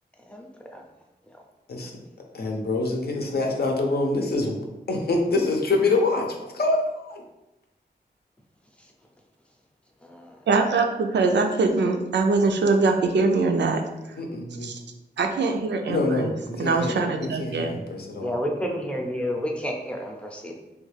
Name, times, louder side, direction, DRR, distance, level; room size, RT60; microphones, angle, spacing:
voice 1, 0.3-0.8 10.0-10.4 18.2-20.6, equal, 5° left, 0 dB, 0.5 m, -30 dB
voice 2, 2.3-4.6 4.9-7.2 14.2-14.7 15.9-16.9 17.2-18.4, left 2 dB, 65° left, 1 dB, 0.6 m, -25 dB
voice 3, 10.5-13.8 14.6-14.8 15.2-16.3 16.6-17.7, right 3 dB, 90° right, 4 dB, 0.4 m, -22 dB
3.3 x 2.3 x 3.2 m, 0.97 s
wide cardioid pair, 90°, 18 cm